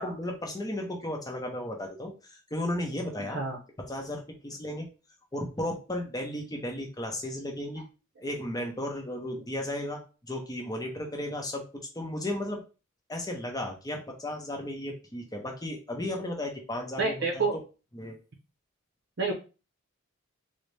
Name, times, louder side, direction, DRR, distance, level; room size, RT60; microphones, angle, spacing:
voice 1, 0.0-3.4 3.8-4.9 5.3-7.9 8.2-12.6 13.1-17.4 17.9-18.2, left 1 dB, 20° left, 2 dB, 0.7 m, -34 dB
voice 2, 17.0-17.6 19.2-19.3, right 3 dB, 50° right, 1 dB, 0.6 m, -28 dB
3.9 x 2.1 x 3.2 m, 0.32 s
head